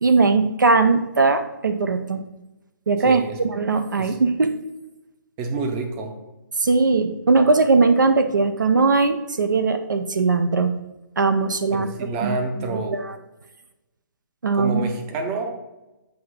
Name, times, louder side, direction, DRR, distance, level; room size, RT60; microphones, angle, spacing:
voice 1, 0.0-2.2 2.9-4.5 6.6-10.7 11.2-11.9 12.2-12.4 12.7-13.1 14.4-14.8, right 4 dB, 65° right, 8 dB, 0.5 m, -19 dB
voice 2, 3.0-3.4 4.0-4.2 5.4-6.2 11.7-13.0 14.5-15.5, right 3 dB, 20° right, 4 dB, 0.7 m, -28 dB
7.6 x 2.8 x 5.2 m, 1.0 s
figure-of-eight pair, 135°, 11 cm